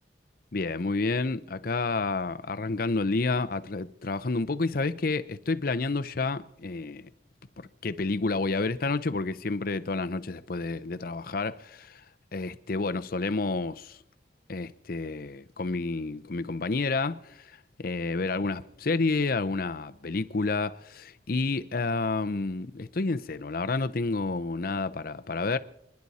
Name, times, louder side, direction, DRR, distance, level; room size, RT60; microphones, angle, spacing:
voice 1, 0.5-7.1 7.6-12.0 12.3-14.0 14.5-17.5 17.8-25.6, left 3 dB, 55° left, 0.7 m, -30 dB
28.5 x 10.5 x 4.2 m
head